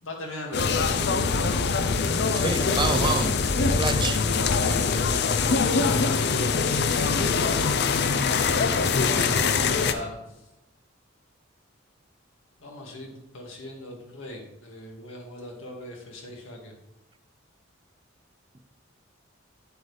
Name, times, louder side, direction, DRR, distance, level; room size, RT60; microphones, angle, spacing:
voice 1, 0.0-1.2 2.2-2.5 5.4-5.9 9.1-10.2 12.6-16.7, left 1 dB, 80° left, 0 dB, 2.0 m, -39 dB
sound 1, 0.5-9.9, left 4 dB, 60° left, 0.5 m, -23 dB
voice 2, 2.3-3.4 3.8-4.2, right 3 dB, 25° right, 9 dB, 0.6 m, -27 dB
8.6 x 7.8 x 3.3 m, 0.90 s
head